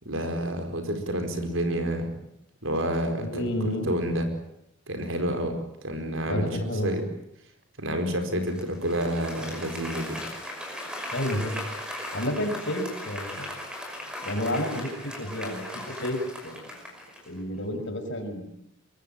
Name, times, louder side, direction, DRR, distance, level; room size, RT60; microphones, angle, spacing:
voice 1, 0.0-2.1 2.6-4.3 4.9-5.6 5.8-7.0 7.8-10.2, right 1 dB, 65° right, 6 dB, 4.7 m, -29 dB
voice 2, 3.2-3.9 6.2-7.0 11.1-11.6 12.1-13.5 14.3-16.8 17.3-18.5, left 1 dB, 55° left, 5 dB, 5.6 m, -30 dB
Applause, 8.5-17.4, left 1 dB, 5° right, 5.7 m, -38 dB
24.0 x 23.0 x 9.2 m, 0.78 s
head